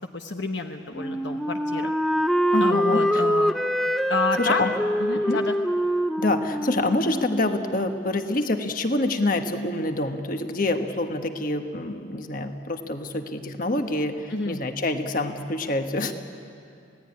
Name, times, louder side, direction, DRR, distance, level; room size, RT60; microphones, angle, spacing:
voice 1, 0.1-1.9 2.6-3.5 4.1-4.6 5.0-5.5 14.3-14.6, left 3 dB, 65° left, 4 dB, 1.0 m, -29 dB
Wind instrument woodwind instrument, 0.9-7.8, equal, ahead, 0.5 m, -25 dB
voice 2, 2.5-3.0 4.4-4.7 5.1-5.4 6.2-16.1, left 2 dB, 45° left, 6 dB, 1.4 m, -26 dB
27.5 x 17.5 x 9.8 m, 2.5 s
head